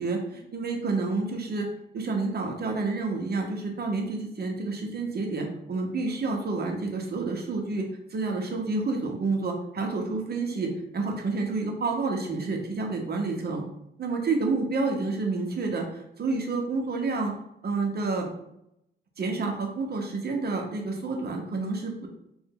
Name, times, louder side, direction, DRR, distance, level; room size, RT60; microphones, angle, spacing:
voice 1, 0.0-1.7 1.9-13.6 14.0-17.3 17.6-18.3 19.2-22.1, right 3 dB, 50° right, 2 dB, 0.9 m, -29 dB
3.8 x 2.6 x 3.7 m, 0.80 s
cardioid pair, 80°, 20 cm